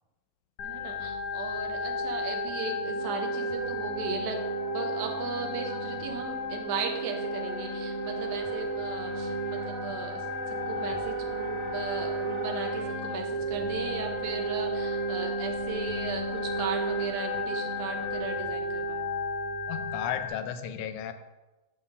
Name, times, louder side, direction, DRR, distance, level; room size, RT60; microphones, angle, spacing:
Organ, 0.6-20.3, equal, 65° left, 1.7 m, -33 dB
voice 1, 0.6-4.4 4.7-19.1, right 5 dB, 90° right, 3 dB, 2.4 m, -37 dB
Wind instrument woodwind instrument, 2.9-18.4, right 1 dB, 70° right, 3.5 m, -40 dB
voice 2, 19.7-21.1, left 9 dB, 85° left, 9 dB, 2.1 m, -34 dB
9.9 x 4.0 x 6.2 m, 1.1 s
omnidirectional pair, 3.4 m